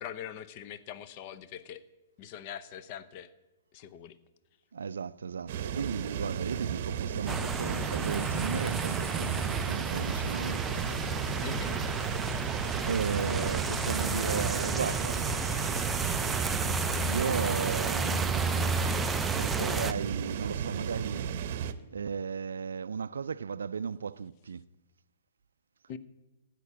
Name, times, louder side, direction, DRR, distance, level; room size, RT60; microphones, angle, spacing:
voice 1, 0.0-1.8 2.2-3.3 3.7-4.2 11.4-11.8 25.9-26.0, left 9 dB, 40° left, 0.7 m, -42 dB
voice 2, 4.7-11.0 12.3-15.3 17.0-19.0 19.4-21.3 21.9-24.6, right 6 dB, 85° right, 0.3 m, -35 dB
sound 1, 5.5-21.7, right 8 dB, 50° right, 0.8 m, -34 dB
sound 2, 7.3-19.9, right 3 dB, 10° right, 0.4 m, -32 dB
15.5 x 5.9 x 9.5 m
hypercardioid pair, 135°, 0 cm